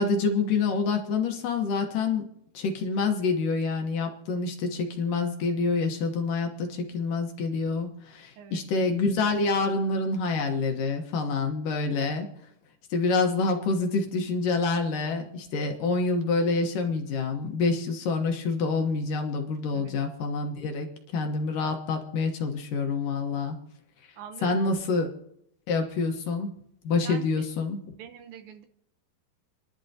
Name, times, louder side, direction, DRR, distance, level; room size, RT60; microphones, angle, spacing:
voice 1, 0.0-2.3 2.5-12.3 12.9-23.6 24.4-25.1 25.7-26.5 26.8-27.8, left 4 dB, 65° left, 3 dB, 2.5 m, -27 dB
voice 2, 24.2-25.0 27.0-27.5 27.9-28.7, right 8 dB, 70° right, 7 dB, 2.5 m, -44 dB
29.5 x 11.5 x 2.8 m, 0.77 s
omnidirectional pair, 4.6 m